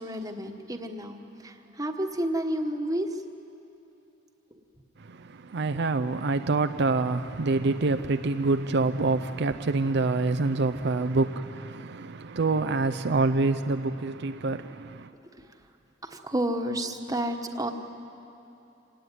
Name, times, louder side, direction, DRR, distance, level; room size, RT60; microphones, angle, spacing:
voice 1, 0.0-3.2 16.0-17.7, right 1 dB, 20° right, 1.3 m, -30 dB
voice 2, 5.5-14.6, right 3 dB, 60° right, 0.5 m, -26 dB
26.5 x 18.0 x 9.3 m
head